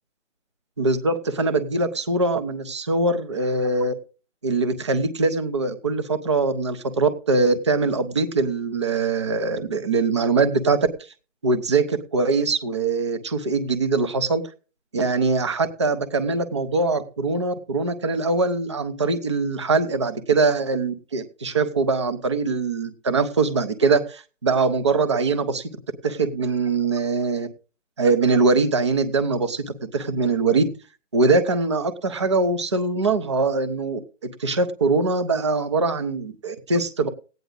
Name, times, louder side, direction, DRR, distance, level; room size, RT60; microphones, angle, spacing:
voice 1, 0.8-3.9 4.4-10.8 11.4-14.4 14.9-25.7 26.0-27.5 28.0-30.6 31.1-34.0 34.4-37.1, right 3 dB, 25° right, 9 dB, 0.7 m, -22 dB
15.0 x 9.3 x 3.8 m, 0.35 s
hypercardioid pair, 170°, 37 cm